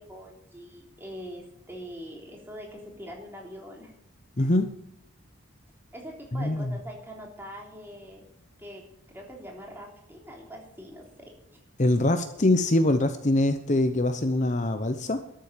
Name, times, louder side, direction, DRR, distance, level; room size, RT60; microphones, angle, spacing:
voice 1, 0.0-3.9 4.4-4.5 5.9-8.2 8.6-11.4, equal, 10° right, 0 dB, 3.4 m, -43 dB
voice 2, 4.4-4.7 6.3-6.8 11.8-15.2, left 1 dB, 35° left, 8 dB, 0.8 m, -23 dB
13.0 x 7.7 x 8.9 m, 0.81 s
head